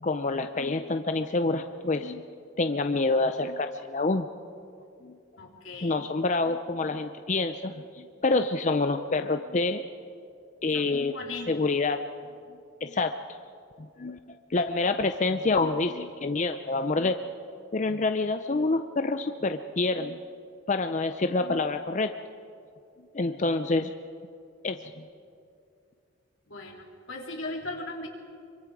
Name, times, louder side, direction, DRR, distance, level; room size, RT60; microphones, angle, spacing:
voice 1, 0.0-2.2 2.6-4.3 5.0-5.1 5.8-9.8 10.6-11.1 11.5-12.0 12.8-13.1 14.0-14.2 14.5-17.2 17.7-20.2 20.7-22.1 23.1-23.9 24.6-24.8, left 3 dB, 35° left, 8 dB, 0.6 m, -27 dB
voice 2, 5.4-6.0 10.7-10.8 11.1-11.5 26.5-28.1, left 2 dB, 80° left, 0 dB, 3.2 m, -38 dB
26.0 x 24.0 x 4.8 m, 2.5 s
head